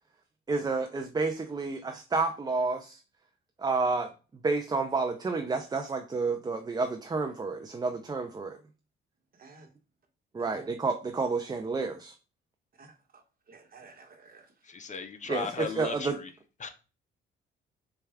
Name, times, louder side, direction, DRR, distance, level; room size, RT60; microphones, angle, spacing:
voice 1, 0.5-3.0 3.6-4.1 4.4-8.6 10.3-12.1 15.3-16.2, right 3 dB, 20° right, 0.4 m, -30 dB
voice 2, 9.3-9.7 10.4-10.7 12.8-14.5, right 4 dB, 45° right, 1.0 m, -53 dB
voice 3, 14.9-15.9 16.6-16.7, left 5 dB, 40° left, 0.5 m, -35 dB
4.2 x 2.3 x 3.4 m
cardioid pair, 90°, 20 cm